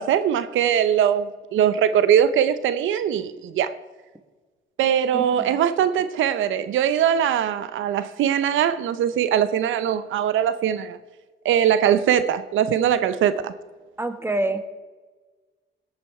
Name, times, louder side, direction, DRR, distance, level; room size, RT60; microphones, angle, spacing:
voice 1, 0.0-3.7 4.8-11.0 11.4-13.5, right 9 dB, 80° right, 0.7 m, -21 dB
voice 2, 5.1-5.5 14.0-14.6, right 2 dB, 10° right, 1.4 m, -27 dB
17.5 x 8.8 x 4.8 m
cardioid pair, 90°, 20 cm